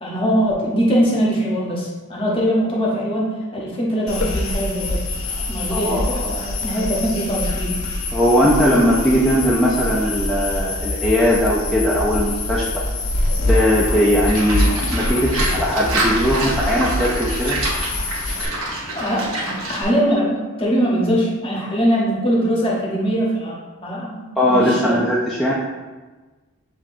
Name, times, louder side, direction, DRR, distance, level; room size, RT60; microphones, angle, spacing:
voice 1, 0.0-5.0 5.5-7.8 18.9-25.1, equal, 25° left, -4 dB, 0.9 m, -22 dB
sound 1, 4.1-18.5, left 1 dB, 65° left, 0.6 m, -24 dB
voice 2, 5.7-6.3 8.1-12.8 13.5-17.6 24.4-25.5, equal, ahead, -6 dB, 0.3 m, -19 dB
Livestock farm animals working animals, 14.3-19.8, right 1 dB, 70° right, 1.1 m, -26 dB
7.2 x 2.7 x 2.5 m, 1.3 s
head